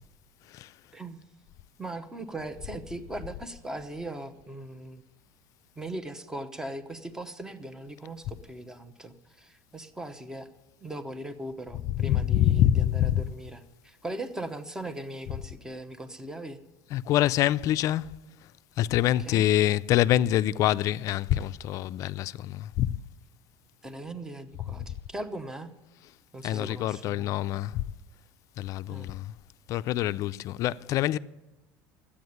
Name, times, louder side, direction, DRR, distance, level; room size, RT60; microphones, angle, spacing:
voice 1, 1.8-5.0 5.7-10.5 10.8-16.6 19.0-19.5 23.8-25.8 26.3-27.3 28.9-29.1, right 1 dB, 10° right, 0.9 m, -39 dB
voice 2, 12.0-13.3 16.9-18.1 18.8-23.0 26.4-27.8 28.6-29.3 29.7-31.2, left 13 dB, 50° left, 0.4 m, -25 dB
12.5 x 8.6 x 9.5 m
cardioid pair, 140°, 7 cm